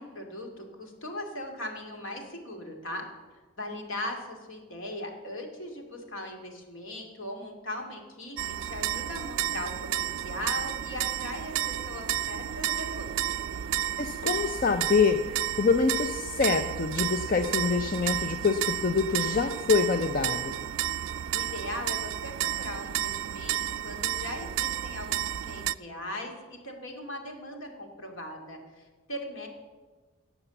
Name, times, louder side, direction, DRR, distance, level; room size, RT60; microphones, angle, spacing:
voice 1, 0.0-3.0 3.6-8.4 8.6-13.1 21.3-29.5, left 1 dB, 65° left, 2 dB, 2.4 m, -39 dB
sound 1, 8.4-25.7, right 11 dB, 60° right, 0.3 m, -32 dB
voice 2, 14.0-20.6, left 5 dB, 40° left, 8 dB, 0.5 m, -26 dB
17.5 x 7.0 x 7.0 m, 1.3 s
head